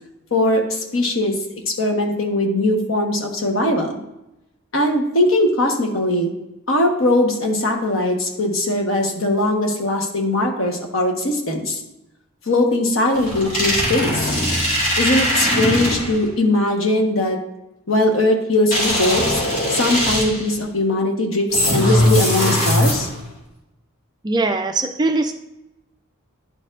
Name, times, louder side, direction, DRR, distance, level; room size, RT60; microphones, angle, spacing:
voice 1, 0.3-1.3 1.7-4.0 4.7-6.3 6.7-11.8 12.5-14.3 15.0-17.4 17.9-19.4 19.7-23.1, left 1 dB, 65° left, 3 dB, 1.1 m, -20 dB
sound 1, 13.1-16.3 18.7-20.5 21.5-23.3, left 1 dB, 40° left, 2.0 m, -20 dB
voice 2, 24.2-25.3, right 3 dB, 20° right, 5 dB, 0.3 m, -21 dB
10.5 x 4.5 x 2.5 m, 0.90 s
head